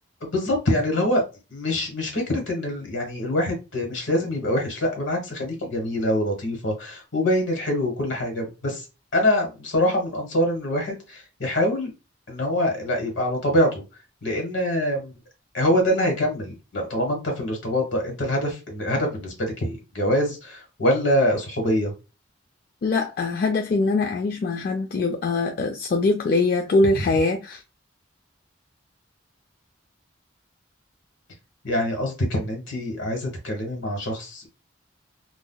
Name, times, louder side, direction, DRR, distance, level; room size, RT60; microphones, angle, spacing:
voice 1, 0.2-1.2 1.5-8.8 9.1-11.9 12.3-13.8 14.2-15.1 15.5-21.9 31.6-34.5, left 1 dB, 70° left, 1.3 m, -24 dB
voice 2, 22.8-27.6, left 3 dB, 45° left, 0.3 m, -22 dB
3.8 x 2.4 x 2.2 m
head